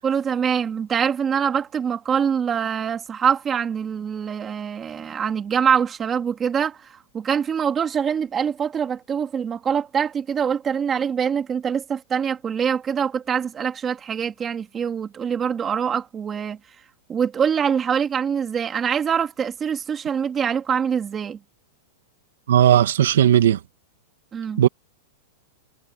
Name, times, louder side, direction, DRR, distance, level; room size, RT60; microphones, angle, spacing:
voice 1, 0.0-16.6 17.1-21.4 24.3-24.6, right 7 dB, 15° right, 2.6 m, -24 dB
voice 2, 22.5-23.6 24.6-24.7, right 10 dB, 80° right, 2.2 m, -16 dB
supercardioid pair, 165°, 0 cm